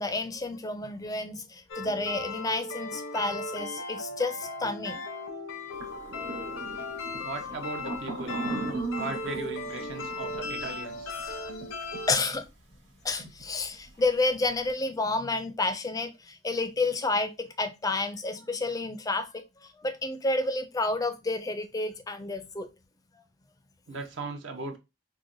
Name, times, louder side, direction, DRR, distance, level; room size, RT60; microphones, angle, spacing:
voice 1, 0.0-5.0 12.1-12.5 13.0-19.4 19.8-22.7, left 2 dB, 20° left, 0.4 m, -30 dB
sound 1, 1.7-12.1, left 2 dB, 80° left, 0.7 m, -37 dB
sound 2, 5.7-11.6 11.9-12.0 13.2-13.4 13.7-14.0, right 3 dB, 85° right, 1.4 m, -37 dB
voice 2, 7.2-8.4 9.0-11.1 23.9-24.8, right 3 dB, 65° right, 0.6 m, -38 dB
4.6 x 2.1 x 2.5 m
head